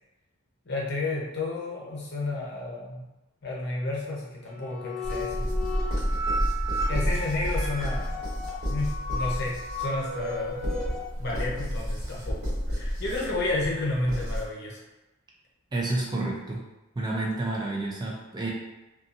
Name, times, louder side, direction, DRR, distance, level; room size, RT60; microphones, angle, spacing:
voice 1, 0.7-3.1 3.4-5.5 6.9-8.2 8.7-10.7 11.2-12.4 12.7-14.8, left 2 dB, 55° left, -3 dB, 0.7 m, -31 dB
sound 1, 4.5-11.0, left 1 dB, ahead, 0.7 m, -34 dB
sound 2, 5.0-14.4, equal, 50° right, 1.4 m, -31 dB
voice 2, 15.7-16.6 17.0-18.5, right 2 dB, 20° right, -2 dB, 0.3 m, -29 dB
2.7 x 2.4 x 2.4 m, 1.0 s
head